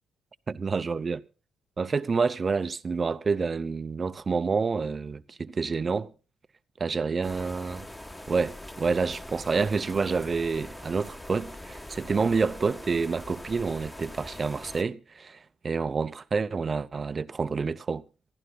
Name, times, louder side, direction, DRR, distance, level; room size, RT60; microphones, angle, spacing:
voice 1, 0.5-1.2 1.8-6.1 6.8-7.9 8.3-18.0, right 4 dB, 35° right, 0.7 m, -28 dB
sound 1, 7.2-14.8, left 1 dB, 15° left, 1.3 m, -43 dB
26.0 x 11.0 x 2.3 m
cardioid pair, 90°, 0 cm